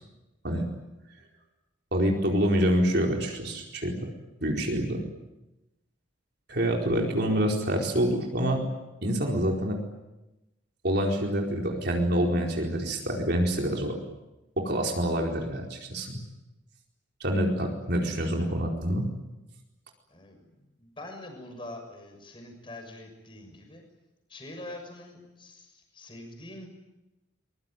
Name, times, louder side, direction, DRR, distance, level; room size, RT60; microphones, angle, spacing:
voice 1, 1.9-4.0 4.4-5.0 6.5-8.6 9.0-9.8 10.8-14.0 14.6-16.1 17.2-19.1, equal, 55° right, 0 dB, 4.5 m, -26 dB
voice 2, 20.8-23.8 24.3-26.7, left 1 dB, 25° left, 4 dB, 6.4 m, -44 dB
24.0 x 22.5 x 9.3 m, 0.98 s
head